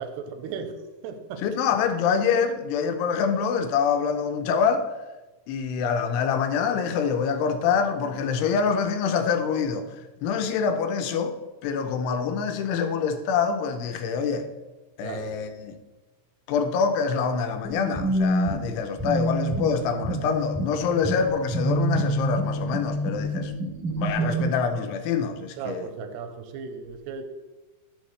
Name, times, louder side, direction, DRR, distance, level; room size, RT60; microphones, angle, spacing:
voice 1, 0.0-1.5 15.0-15.4 24.2-24.5 25.6-27.2, right 6 dB, 85° right, 2.7 m, -36 dB
voice 2, 1.4-4.9 5.5-9.9 10.2-11.3 11.6-14.5 15.0-15.8 16.5-23.5 24.0-25.9, left 6 dB, 85° left, 2.8 m, -25 dB
sound 1, 17.6-24.5, right 1 dB, 15° left, 1.8 m, -27 dB
11.5 x 6.6 x 3.2 m
omnidirectional pair, 4.8 m